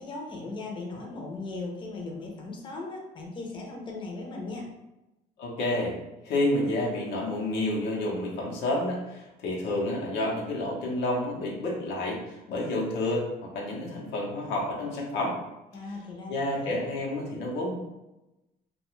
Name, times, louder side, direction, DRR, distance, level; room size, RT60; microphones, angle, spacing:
voice 1, 0.0-4.7 15.7-16.7, left 3 dB, 30° left, -1 dB, 0.6 m, -38 dB
voice 2, 5.4-6.0 6.2-15.4 16.3-17.7, left 1 dB, 85° left, -3 dB, 0.8 m, -29 dB
2.3 x 2.3 x 3.0 m, 0.98 s
cardioid pair, 110°, 17 cm